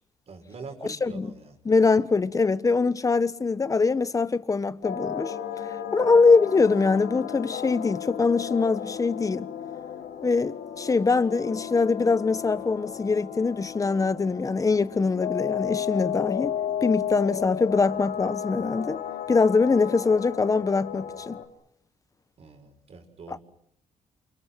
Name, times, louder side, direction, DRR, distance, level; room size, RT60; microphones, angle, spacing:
voice 1, 0.3-1.6 22.4-23.4, right 4 dB, 50° right, 6.4 m, -44 dB
voice 2, 1.6-5.3 5.9-9.5 10.2-16.6 16.8-19.0 19.3-21.4 23.3-23.4, left 4 dB, 25° left, 1.3 m, -23 dB
sound 1, 4.8-21.5, left 9 dB, 85° left, 3.5 m, -34 dB
29.5 x 28.5 x 5.8 m
cardioid pair, 120°, 14 cm